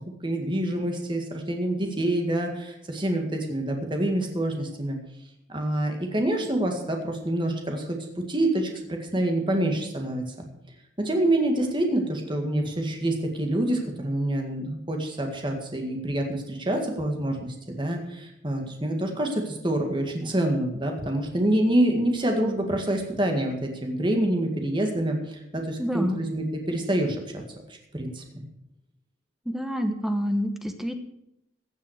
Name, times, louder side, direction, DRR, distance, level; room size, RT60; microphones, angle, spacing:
voice 1, 0.2-5.0 5.5-8.0 8.3-10.5 11.0-27.4 27.9-28.4, right 1 dB, 25° right, 2 dB, 1.9 m, -26 dB
voice 2, 25.8-26.2 29.4-30.9, equal, ahead, 6 dB, 1.0 m, -27 dB
15.5 x 7.4 x 6.5 m, 0.83 s
head